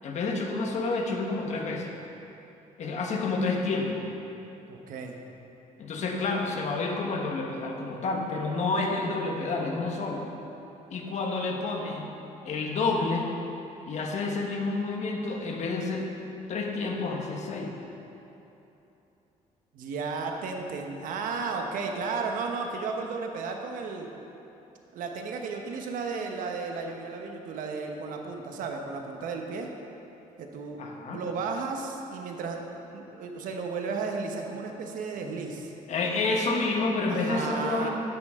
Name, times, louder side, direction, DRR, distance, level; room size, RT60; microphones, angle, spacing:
voice 1, 0.0-1.9 2.8-4.1 5.8-10.2 10.9-12.1 12.4-13.3 13.9-16.1 16.5-17.7 30.8-31.2 35.9-37.9, left 3 dB, 55° left, 1 dB, 1.5 m, -29 dB
voice 2, 4.7-5.2 19.7-24.1 24.9-29.7 30.4-30.8 31.1-32.6 32.9-35.7 37.1-37.9, right 4 dB, 75° right, 2 dB, 1.2 m, -34 dB
12.0 x 9.6 x 3.7 m, 3.0 s
cardioid pair, 110°, 14 cm